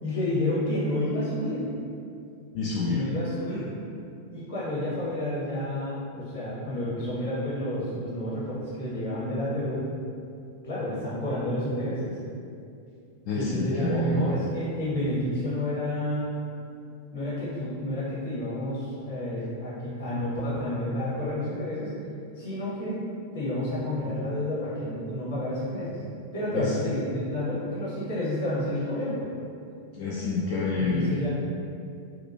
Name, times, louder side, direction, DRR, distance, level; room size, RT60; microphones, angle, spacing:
voice 1, 0.0-1.7 2.9-3.7 4.3-9.9 10.6-12.2 13.3-16.4 17.1-21.9 22.3-23.0 23.3-26.0 26.3-29.3 30.8-31.3, left 1 dB, 65° left, -9 dB, 1.0 m, -30 dB
voice 2, 2.5-3.0 13.3-14.3 26.5-26.7 29.9-31.1, left 2 dB, 45° left, -5 dB, 0.3 m, -27 dB
2.8 x 2.3 x 2.6 m, 2.5 s
figure-of-eight pair, 90°, 0 cm